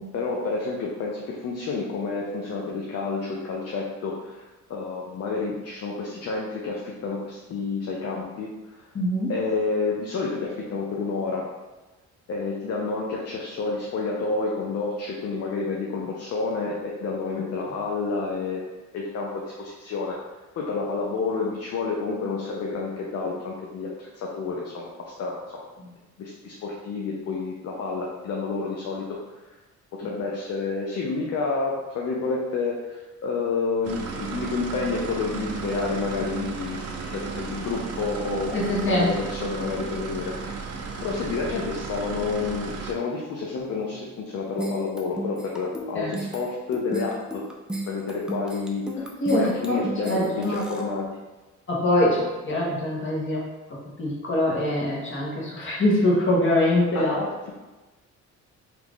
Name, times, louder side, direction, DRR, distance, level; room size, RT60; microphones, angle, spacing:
voice 1, 0.1-8.8 9.3-11.5 12.3-18.6 18.9-20.2 20.5-25.6 26.2-29.1 29.4-29.5 29.9-36.8 37.1-40.7 41.0-47.4 47.9-51.1 56.9-57.5, left 4 dB, 55° left, -2 dB, 0.6 m, -29 dB
voice 2, 8.9-9.3 25.8-25.9 38.5-39.1 45.9-46.2 49.2-50.9 51.7-53.4 53.7-57.2, left 1 dB, 40° left, -4 dB, 1.2 m, -24 dB
sound 1, 33.8-42.9, right 5 dB, 55° right, 0.6 m, -34 dB
sound 2, 44.6-50.8, right 1 dB, 5° right, 0.4 m, -34 dB
2.9 x 2.4 x 3.5 m, 1.2 s
cardioid pair, 90°, 30 cm